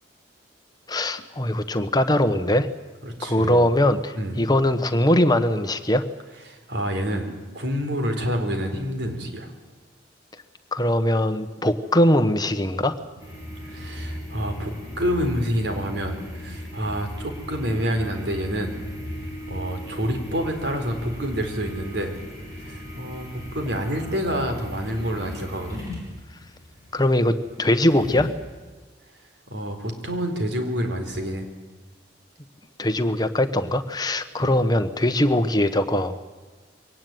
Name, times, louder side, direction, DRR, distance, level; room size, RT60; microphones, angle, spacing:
voice 1, 0.9-2.7 3.2-6.0 10.7-13.0 26.9-28.3 32.8-36.2, left 1 dB, 20° left, 9 dB, 1.2 m, -21 dB
voice 2, 3.0-3.6 4.1-4.3 6.5-7.3 7.5-9.5 13.7-18.7 19.5-22.1 22.5-25.9 29.5-31.5 34.4-34.5, equal, 65° right, 5 dB, 4.2 m, -28 dB
sound 1, 13.2-28.4, left 1 dB, 20° right, 7.1 m, -37 dB
23.0 x 18.5 x 9.3 m, 1.4 s
head